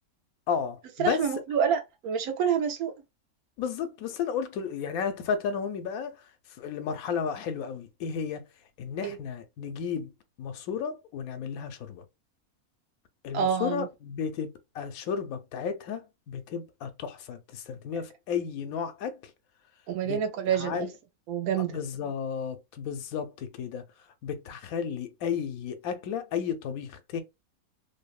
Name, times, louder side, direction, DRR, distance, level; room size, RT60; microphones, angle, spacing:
voice 1, 0.5-1.2 3.6-6.1 6.6-8.4 8.8-10.1 10.4-12.0 13.2-19.1 20.0-20.2 20.6-20.9 21.7-23.8 24.2-27.2, left 7 dB, 80° left, 1.0 m, -33 dB
voice 2, 1.0-2.9 9.0-9.2 13.3-13.9 19.9-20.9 21.3-21.8, right 7 dB, 90° right, 1.1 m, -27 dB
2.9 x 2.1 x 2.3 m
omnidirectional pair, 1.5 m